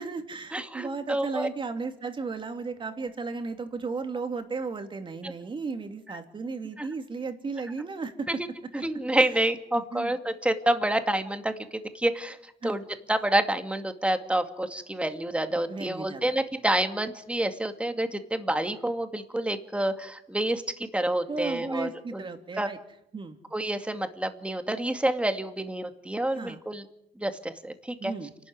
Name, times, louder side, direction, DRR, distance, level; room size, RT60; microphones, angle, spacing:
voice 1, 0.0-8.3 9.2-9.4 9.7-10.2 12.6-12.8 15.7-16.4 21.3-22.8 23.1-23.4 26.3-26.6 28.0-28.3, right 4 dB, 30° right, 7 dB, 3.0 m, -35 dB
voice 2, 0.5-1.5 6.8-6.9 8.3-8.4 8.8-11.5 11.9-12.4 12.6-22.3 22.6-22.7 23.5-26.8 27.2-28.1, right 1 dB, 5° right, 8 dB, 2.2 m, -28 dB
29.5 x 12.5 x 9.5 m, 0.83 s
cardioid pair, 110°, 17 cm